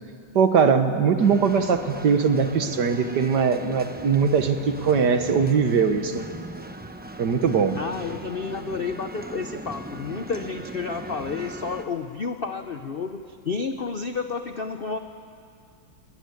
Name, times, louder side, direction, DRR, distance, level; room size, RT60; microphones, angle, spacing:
voice 1, 0.4-6.3 7.2-7.8, right 6 dB, 60° right, 8 dB, 1.8 m, -21 dB
sound 1, 1.2-11.8, right 1 dB, 10° right, 0.5 m, -39 dB
voice 2, 7.7-15.0, left 5 dB, 65° left, 7 dB, 0.5 m, -31 dB
21.0 x 20.0 x 9.7 m, 2.4 s
omnidirectional pair, 2.1 m